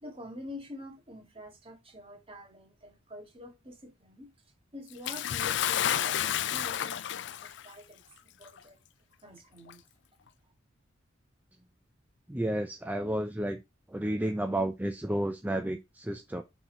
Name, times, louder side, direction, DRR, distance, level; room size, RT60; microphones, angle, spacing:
voice 1, 0.0-4.3 4.7-8.8 9.2-9.8, left 1 dB, 30° right, 1.9 m, -47 dB
Bathtub (filling or washing) / Splash splatter, 5.1-7.7 8.6-8.7 9.7-9.8, left 10 dB, 65° left, 0.4 m, -30 dB
voice 2, 12.3-13.6 13.9-16.4, right 1 dB, 10° right, 0.5 m, -31 dB
6.3 x 4.4 x 3.8 m
head